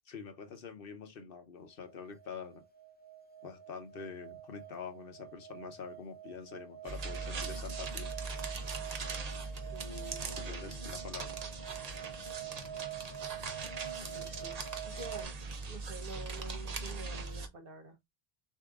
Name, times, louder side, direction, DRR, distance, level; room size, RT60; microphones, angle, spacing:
voice 1, 0.1-2.6 3.4-8.1 10.4-11.5, left 6 dB, 60° left, 1.0 m, -46 dB
sound 1, 1.9-15.2, right 10 dB, 10° left, 0.6 m, -46 dB
sound 2, 6.8-17.5, right 4 dB, 45° right, 0.7 m, -40 dB
voice 2, 9.7-10.8 14.0-15.4 15.7-18.1, right 2 dB, 60° right, 1.2 m, -49 dB
6.6 x 2.7 x 2.4 m
omnidirectional pair, 1.1 m